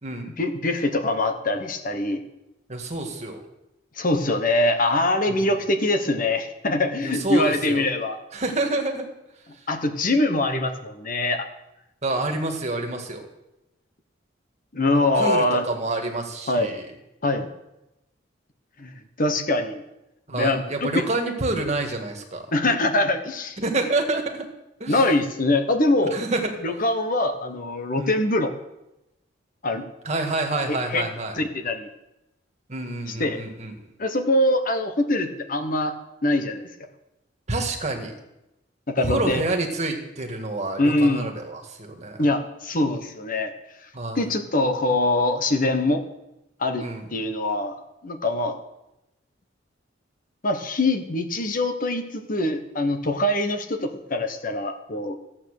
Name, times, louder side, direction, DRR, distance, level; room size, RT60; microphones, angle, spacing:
voice 1, 0.4-2.2 4.0-8.2 9.7-11.5 14.7-15.6 16.5-16.7 17.2-17.5 18.8-19.8 20.3-20.9 22.5-23.6 24.9-26.2 26.6-28.5 29.6-29.9 30.7-31.0 31.4-31.9 33.2-33.4 34.0-35.9 36.2-36.7 38.9-39.4 40.8-41.3 42.2-43.5 44.2-46.0 46.6-46.8 47.1-47.7 48.0-48.6 50.4-55.2, left 2 dB, 45° left, 6 dB, 1.2 m, -23 dB
voice 2, 2.7-3.4 5.3-5.4 7.0-7.9 8.3-9.1 9.5-9.6 12.0-13.2 14.9-16.8 20.3-22.4 23.6-24.5 24.8-25.1 26.0-26.8 27.9-28.2 30.0-31.4 32.7-33.9 37.5-38.1 39.0-42.2 43.9-44.2 46.8-47.1, right 2 dB, 35° right, 3 dB, 1.9 m, -28 dB
14.5 x 8.7 x 6.7 m, 0.92 s
head